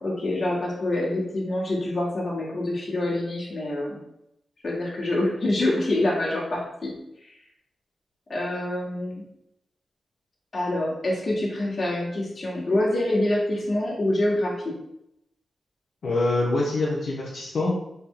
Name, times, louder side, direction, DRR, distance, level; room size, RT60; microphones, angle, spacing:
voice 1, 0.0-4.0 4.6-7.0 7.2-7.3 8.3-9.3 10.5-14.7, left 1 dB, 40° left, -5 dB, 1.3 m, -26 dB
voice 2, 16.0-17.8, left 2 dB, 75° left, -4 dB, 0.7 m, -25 dB
4.1 x 2.1 x 3.7 m, 0.82 s
wide cardioid pair, 120°, 0 cm